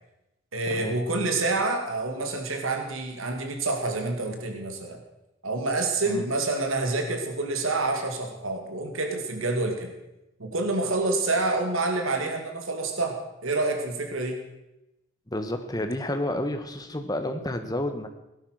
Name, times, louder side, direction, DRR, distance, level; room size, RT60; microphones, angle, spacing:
voice 1, 0.5-5.0 5.4-9.9 10.4-14.4, right 2 dB, 85° right, 4 dB, 2.4 m, -27 dB
voice 2, 15.3-18.1, left 1 dB, 20° left, 7 dB, 1.3 m, -30 dB
17.5 x 11.5 x 6.5 m, 0.93 s
head